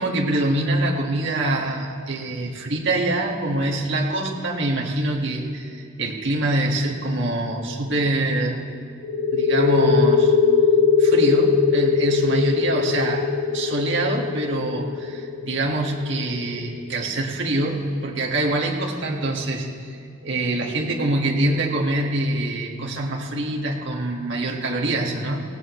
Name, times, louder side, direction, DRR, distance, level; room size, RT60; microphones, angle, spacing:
voice 1, 0.0-8.7 9.3-10.3 11.0-25.4, right 1 dB, 55° right, -1 dB, 1.8 m, -25 dB
sound 1, 9.0-16.4, left 6 dB, 55° left, 1.3 m, -20 dB
19.5 x 17.5 x 3.2 m, 2.2 s
head